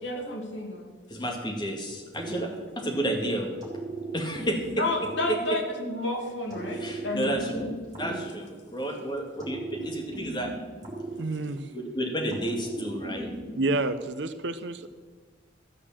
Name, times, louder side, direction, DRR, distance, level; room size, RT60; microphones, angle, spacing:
voice 1, 0.0-0.9 2.3-2.5 4.8-8.2, left 2 dB, 75° left, 2 dB, 2.2 m, -32 dB
voice 2, 1.1-2.5 2.8-3.6 4.1-4.8 5.3-5.4 6.7-7.7 8.0-10.5 11.5-13.3, right 1 dB, 25° left, 1 dB, 1.9 m, -31 dB
sound 1, 2.1-3.1 3.6-6.0 6.5-8.9 9.4-11.8 12.3-13.8, right 2 dB, 20° right, 3.4 m, -38 dB
voice 3, 11.2-11.6 13.5-14.9, right 2 dB, 70° right, 11 dB, 0.7 m, -29 dB
13.5 x 6.6 x 7.5 m, 1.5 s
head